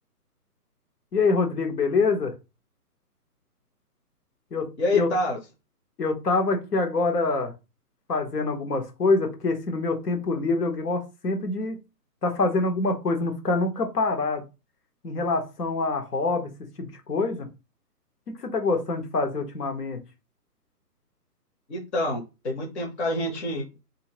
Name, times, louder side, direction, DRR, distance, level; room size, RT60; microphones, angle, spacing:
voice 1, 1.1-2.3 4.5-5.1 6.0-7.5 8.1-11.8 12.2-14.4 15.0-16.5 16.8-17.5 18.3-20.0, left 3 dB, 70° left, 1.2 m, -25 dB
voice 2, 4.8-5.4 21.7-23.7, left 2 dB, 45° left, 0.9 m, -27 dB
2.8 x 2.6 x 2.8 m
hypercardioid pair, 175°, 48 cm